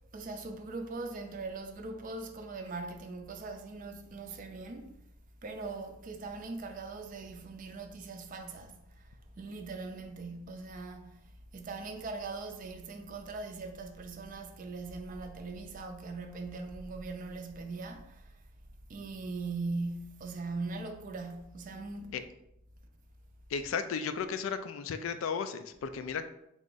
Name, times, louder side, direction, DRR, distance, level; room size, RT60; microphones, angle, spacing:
voice 1, 0.1-4.9 5.4-8.8 9.4-11.2 11.5-18.4 18.9-22.1, right 3 dB, 40° right, 0.4 m, -40 dB
voice 2, 23.5-26.2, left 6 dB, 80° left, 0.3 m, -34 dB
3.7 x 2.4 x 3.8 m
head